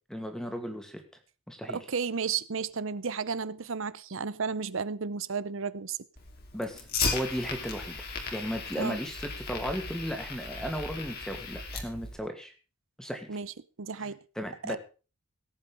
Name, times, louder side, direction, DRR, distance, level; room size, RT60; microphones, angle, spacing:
voice 1, 0.1-1.0 1.5-1.8 6.5-8.0 8.3-12.5 13.0-13.3 14.4-14.8, equal, 5° left, 2.3 m, -35 dB
voice 2, 1.7-6.0 8.8-9.0 13.3-13.5 13.8-14.2 14.6-14.8, right 5 dB, 65° right, 0.7 m, -33 dB
Fire, 6.2-12.2, left 4 dB, 45° left, 2.8 m, -36 dB
17.5 x 8.5 x 5.3 m
head